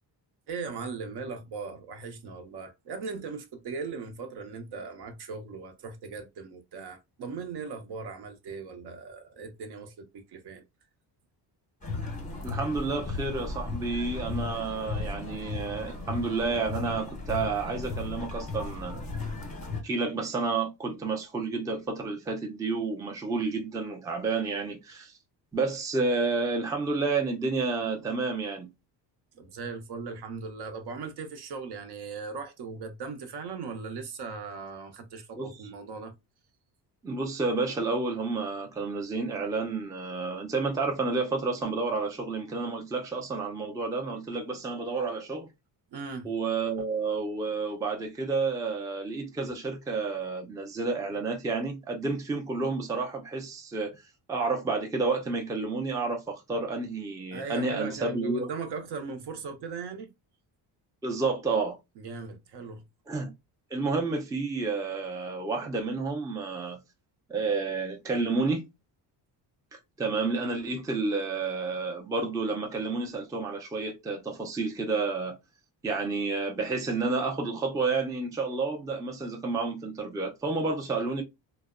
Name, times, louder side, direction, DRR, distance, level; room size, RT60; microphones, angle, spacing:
voice 1, 0.5-10.6 29.4-36.1 45.9-46.3 57.3-60.1 62.0-62.8, right 4 dB, 65° right, 0.7 m, -38 dB
sound 1, 11.8-19.8, left 3 dB, 15° left, 0.7 m, -35 dB
voice 2, 12.4-19.1 19.8-25.2 25.5-28.7 35.3-35.6 37.0-45.5 46.2-54.0 54.3-58.5 61.0-61.8 63.1-63.3 63.7-66.8 67.3-68.7 70.0-75.4 75.8-81.2, right 3 dB, 10° right, 0.4 m, -30 dB
2.6 x 2.0 x 2.4 m
cardioid pair, 120°, 44 cm